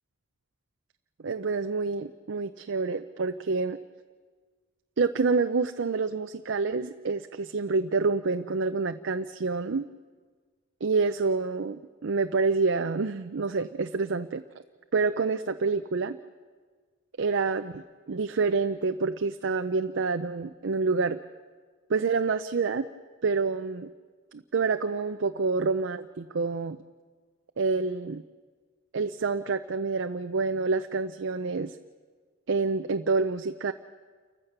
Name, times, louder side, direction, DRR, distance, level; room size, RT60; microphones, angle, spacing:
voice 1, 1.2-3.8 5.0-9.9 10.8-14.4 14.9-16.2 17.2-21.2 21.9-22.9 23.2-23.9 24.3-26.8 27.6-28.2 28.9-31.7 32.5-33.7, right 4 dB, 65° right, 8 dB, 0.6 m, -27 dB
29.0 x 15.0 x 6.7 m, 1.5 s
head